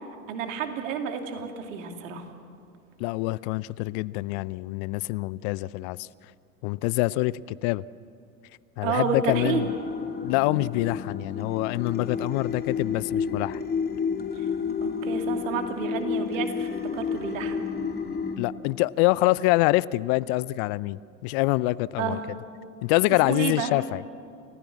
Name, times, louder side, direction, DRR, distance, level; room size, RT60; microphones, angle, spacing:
voice 1, 0.3-2.3 8.8-9.7 14.4-14.5 14.8-17.6 22.0-22.2 23.3-23.7, right 6 dB, 70° right, 6 dB, 2.6 m, -30 dB
voice 2, 3.0-6.1 6.6-7.8 8.8-9.7 10.2-13.6 18.4-22.2 22.8-24.0, left 19 dB, 55° left, 21 dB, 0.6 m, -25 dB
sound 1, 9.3-18.4, left 6 dB, 25° left, 2.7 m, -30 dB
29.5 x 15.0 x 7.4 m, 2.5 s
hypercardioid pair, 80°, 40 cm